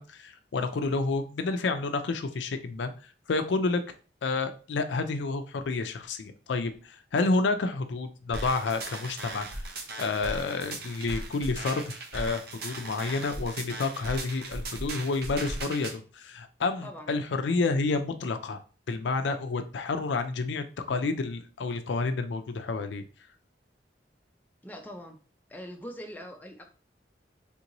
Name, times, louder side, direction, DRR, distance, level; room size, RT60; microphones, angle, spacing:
voice 1, 0.0-2.9 3.3-3.8 4.2-9.6 10.0-18.6 18.9-23.0, left 3 dB, 80° left, 8 dB, 0.4 m, -29 dB
sound 1, 8.3-15.9, right 2 dB, 60° right, 0.6 m, -38 dB
voice 2, 16.8-17.1 24.6-25.2 25.5-26.6, equal, 10° left, 2 dB, 0.4 m, -42 dB
3.6 x 2.9 x 2.6 m, 0.37 s
head